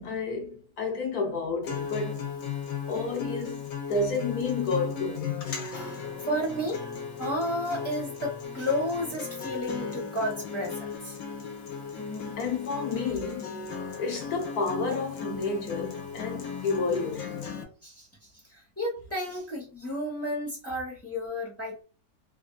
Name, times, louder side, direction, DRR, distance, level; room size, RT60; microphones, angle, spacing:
voice 1, 0.0-2.2 2.9-5.6 12.0-13.7 14.0-17.6, left 4 dB, 65° left, 1.1 m, -31 dB
Acoustic guitar, 1.6-17.6, left 6 dB, 85° left, 1.5 m, -36 dB
voice 2, 5.7-6.9 7.2-11.1 17.8-18.1 18.8-21.8, left 1 dB, 10° left, 0.8 m, -32 dB
3.3 x 2.6 x 2.4 m
omnidirectional pair, 2.0 m